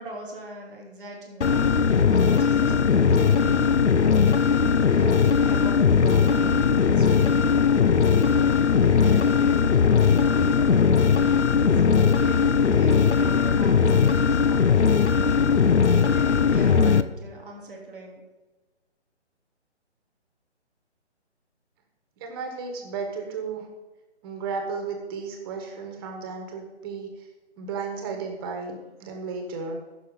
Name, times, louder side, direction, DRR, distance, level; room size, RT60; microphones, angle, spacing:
voice 1, 0.0-3.5 4.7-7.5 8.7-11.1 11.5-12.5 12.7-18.2, right 2 dB, ahead, -15 dB, 0.6 m, -41 dB
sound 1, 1.4-17.0, left 6 dB, 75° left, 0.8 m, -19 dB
voice 2, 22.2-23.7 24.2-27.3 27.6-29.8, right 4 dB, 20° right, 3 dB, 1.6 m, -34 dB
15.0 x 6.3 x 5.1 m, 1.2 s
figure-of-eight pair, 150°, 35 cm